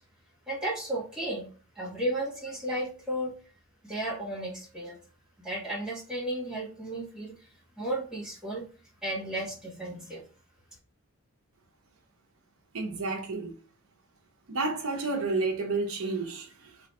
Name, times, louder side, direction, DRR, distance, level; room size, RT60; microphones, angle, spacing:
voice 1, 0.5-1.4 1.8-3.3 3.8-5.0 5.4-7.3 7.8-8.6 9.0-10.2, right 1 dB, 5° right, 0.9 m, -33 dB
voice 2, 12.7-13.5 14.5-16.5, right 3 dB, 75° right, 0.8 m, -30 dB
3.3 x 2.3 x 4.0 m
head